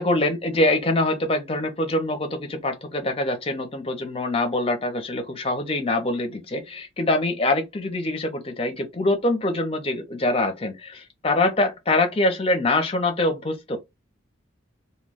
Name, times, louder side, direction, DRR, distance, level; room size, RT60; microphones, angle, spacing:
voice 1, 0.0-13.8, left 2 dB, 25° left, 0.6 m, -24 dB
2.2 x 2.2 x 3.3 m
head